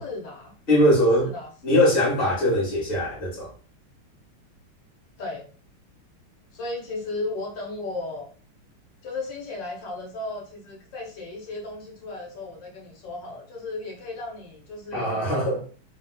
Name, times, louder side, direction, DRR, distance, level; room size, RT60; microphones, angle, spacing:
voice 1, 0.0-0.5 1.2-1.8 5.2-5.5 6.5-8.3 9.0-15.3, left 2 dB, 70° left, 1.4 m, -35 dB
voice 2, 0.7-1.3 1.6-3.5 14.9-15.6, equal, 30° left, 1.4 m, -21 dB
3.5 x 2.8 x 2.2 m
omnidirectional pair, 2.2 m